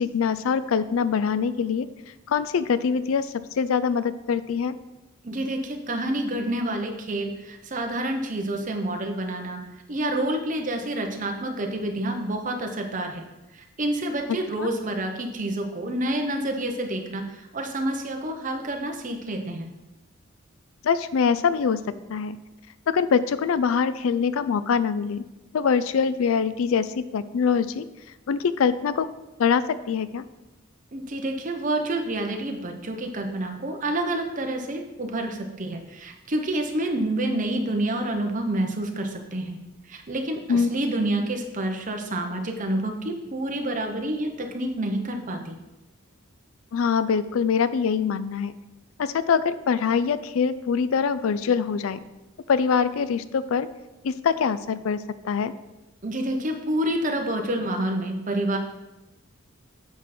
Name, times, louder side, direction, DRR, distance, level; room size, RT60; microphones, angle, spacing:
voice 1, 0.0-1.9 2.3-4.8 14.6-14.7 20.8-21.8 22.1-22.4 22.9-25.2 25.5-27.8 28.3-29.1 29.4-30.2 40.5-40.7 46.7-48.5 49.0-52.0 52.5-53.7 54.0-55.5, left 6 dB, 80° left, 14 dB, 0.4 m, -24 dB
voice 2, 5.2-9.6 9.9-13.3 13.5-19.7 30.9-39.6 39.9-45.5 56.0-58.6, right 1 dB, 40° right, 3 dB, 0.9 m, -28 dB
8.1 x 4.8 x 4.3 m, 1.0 s
head